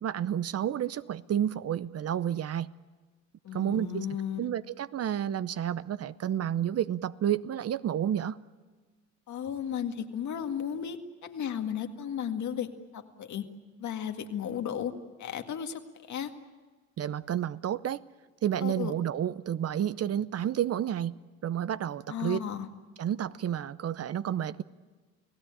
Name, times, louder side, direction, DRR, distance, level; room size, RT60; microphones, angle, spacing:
voice 1, 0.0-2.7 3.5-4.1 4.4-8.4 17.0-18.0 18.4-21.2 21.4-22.4 23.0-24.6, right 10 dB, 55° right, 0.8 m, -30 dB
voice 2, 3.4-4.4 9.3-13.5 13.8-14.9 15.2-16.3 18.6-18.9 22.1-22.7, left 8 dB, 70° left, 2.0 m, -34 dB
30.0 x 17.0 x 8.9 m
cardioid pair, 90°, 30 cm